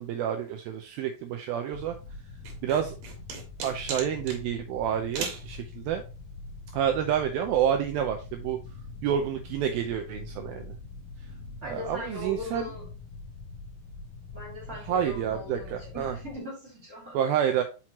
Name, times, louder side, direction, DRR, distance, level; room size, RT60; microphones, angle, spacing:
voice 1, 0.0-2.0 2.6-3.0 3.6-6.0 6.7-8.6 9.0-10.8 11.6-12.7 14.7-16.2 17.1-17.6, right 9 dB, 80° right, 5 dB, 2.1 m, -29 dB
sound 1, 1.7-16.4, left 3 dB, 90° left, 1.9 m, -43 dB
sound 2, 2.4-4.4 5.1-5.5, right 5 dB, 65° right, 3.0 m, -36 dB
voice 2, 11.6-12.9 14.3-17.2, left 1 dB, 25° right, -3 dB, 2.7 m, -40 dB
6.0 x 5.8 x 2.9 m, 0.31 s
omnidirectional pair, 4.8 m